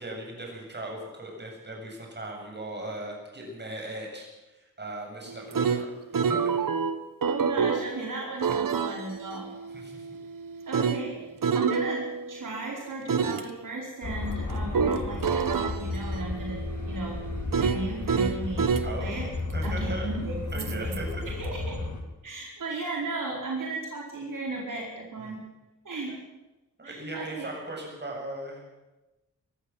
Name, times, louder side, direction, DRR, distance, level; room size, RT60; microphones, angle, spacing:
voice 1, 0.0-6.6 9.7-10.1 18.8-19.1 19.5-20.1 20.5-21.2 25.2-25.4 26.1-26.2 26.8-28.6, right 1 dB, 30° right, 0 dB, 7.9 m, -38 dB
sound 1, 5.3-7.9 8.4-12.5 13.1-13.4 14.7-18.9 20.6-21.0, right 6 dB, 90° right, 1.3 m, -28 dB
voice 2, 7.3-9.5 10.7-16.6 16.8-17.2 17.5-18.7 19.0-19.3 19.6-21.0 21.2-21.8 22.2-25.4 25.8-26.1 26.8-27.5, right 2 dB, 70° right, -2 dB, 4.8 m, -35 dB
sound 2, 14.0-22.0, left 2 dB, 60° left, 3.6 m, -33 dB
23.0 x 15.0 x 7.6 m, 1.0 s
wide cardioid pair, 95°, 32 cm